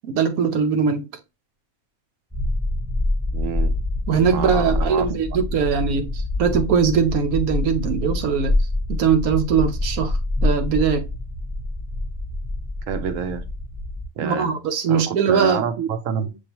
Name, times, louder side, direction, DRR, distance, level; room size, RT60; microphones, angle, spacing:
voice 1, 0.1-1.0 4.1-8.5 8.9-10.1 10.4-11.1 14.2-15.6, right 6 dB, 90° right, 1.2 m, -21 dB
sound 1, 2.3-14.1, left 2 dB, 5° right, 0.8 m, -26 dB
voice 2, 3.3-3.8 4.3-5.2 12.9-13.4 14.2-14.5 14.9-16.4, right 7 dB, 70° right, 1.0 m, -27 dB
6.4 x 2.8 x 2.8 m
omnidirectional pair, 1.5 m